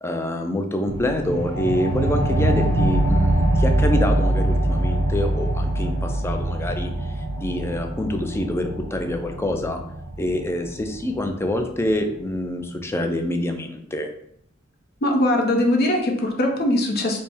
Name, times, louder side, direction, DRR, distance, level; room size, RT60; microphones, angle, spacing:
voice 1, 0.0-9.8 10.2-14.1, left 1 dB, 10° left, 5 dB, 0.3 m, -26 dB
sound 1, 0.9-11.9, right 1 dB, 65° right, 0.5 m, -23 dB
voice 2, 15.0-17.2, left 1 dB, 50° left, 2 dB, 0.6 m, -21 dB
4.3 x 2.1 x 3.4 m, 0.70 s
head